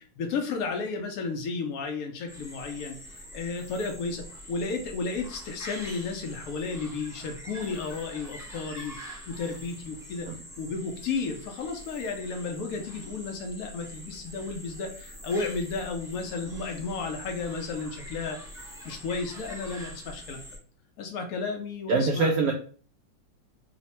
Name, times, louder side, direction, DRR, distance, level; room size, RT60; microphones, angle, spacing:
voice 1, 0.2-9.0 9.3-10.3 10.6-20.4 21.0-22.3, left 4 dB, 85° left, 3 dB, 0.7 m, -33 dB
sound 1, 2.3-20.6, equal, 5° right, 0.4 m, -44 dB
voice 2, 21.9-22.5, right 3 dB, 85° right, 2 dB, 0.8 m, -23 dB
3.2 x 2.1 x 4.1 m, 0.41 s
omnidirectional pair, 2.2 m